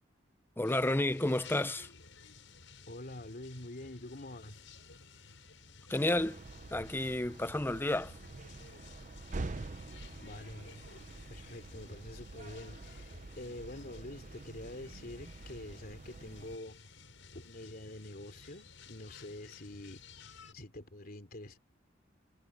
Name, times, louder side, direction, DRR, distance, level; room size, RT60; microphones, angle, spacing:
sound 1, 0.6-20.5, left 4 dB, 80° left, 6.6 m, -55 dB
voice 1, 0.6-1.9 5.9-6.4 6.7-8.1, left 1 dB, 10° left, 0.7 m, -31 dB
voice 2, 2.9-4.6 10.2-10.8 11.3-13.1 13.4-16.9 17.3-21.6, left 1 dB, 50° left, 3.4 m, -46 dB
sound 2, 6.1-16.6, right 3 dB, 40° right, 0.6 m, -47 dB
head